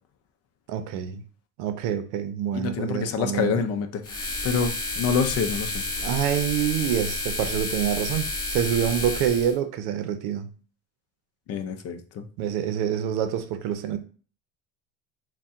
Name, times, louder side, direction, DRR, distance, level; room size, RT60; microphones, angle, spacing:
voice 1, 0.7-1.2 1.6-3.6 6.0-10.5 12.4-14.0, right 9 dB, 80° right, 0.7 m, -26 dB
voice 2, 2.5-5.8 11.5-12.2, left 6 dB, 45° left, 0.6 m, -27 dB
sound 1, 4.0-9.5, left 2 dB, 25° left, 1.2 m, -30 dB
4.2 x 2.2 x 3.6 m
cardioid pair, 125°, 35 cm